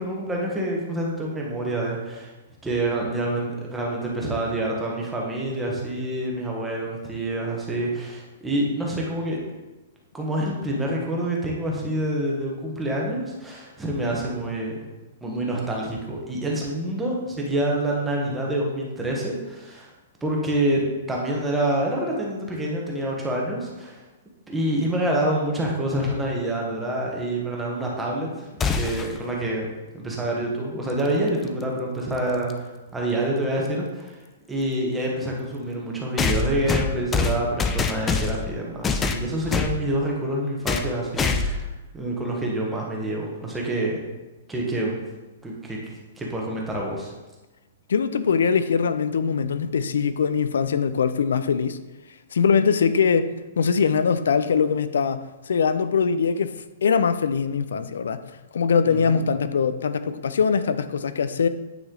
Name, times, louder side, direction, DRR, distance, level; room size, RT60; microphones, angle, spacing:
voice 1, 0.0-2.3 2.6-9.4 10.1-14.8 15.2-19.9 20.2-24.0 24.5-29.7 29.9-32.7 32.9-34.2 34.5-41.7 41.9-44.0 44.5-45.0 45.4-45.8 46.2-47.1 58.8-59.2, right 1 dB, 5° right, -2 dB, 1.0 m, -27 dB
sound 1, 28.6-29.2 31.3-31.4 32.5-32.6 36.2-38.5 38.8-39.8 40.7-40.9 41.2-41.7, left 4 dB, 15° left, 0.3 m, -24 dB
voice 2, 47.9-51.8 52.3-58.2 58.5-61.5, left 6 dB, 90° left, 12 dB, 0.4 m, -22 dB
9.1 x 3.2 x 3.8 m, 1.1 s
hypercardioid pair, 165°, 0 cm